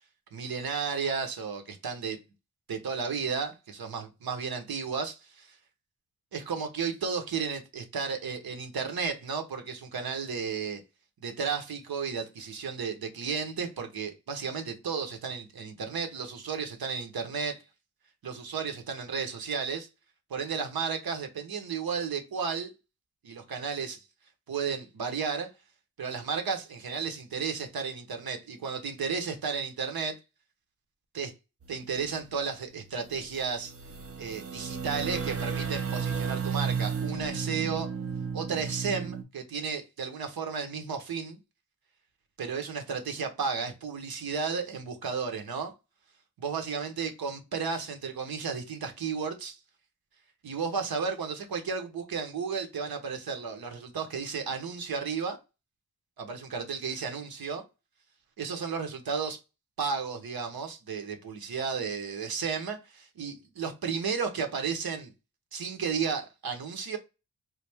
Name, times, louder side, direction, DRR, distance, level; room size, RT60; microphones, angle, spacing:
voice 1, 0.3-2.2 2.7-5.5 6.3-10.8 11.2-17.6 18.2-19.9 20.3-22.7 23.2-24.0 24.5-25.5 26.0-30.2 31.1-31.3 31.7-33.7 34.2-37.9 38.3-41.4 42.4-45.7 46.4-49.6 50.4-55.4 56.2-57.6 58.4-59.4 59.8-65.1 65.5-67.0, right 5 dB, 70° right, 1.0 m, -33 dB
sound 1, 31.6-32.3 32.9-33.0 33.3-39.2, right 6 dB, 40° right, 0.7 m, -33 dB
3.2 x 2.4 x 3.4 m
cardioid pair, 45°, 38 cm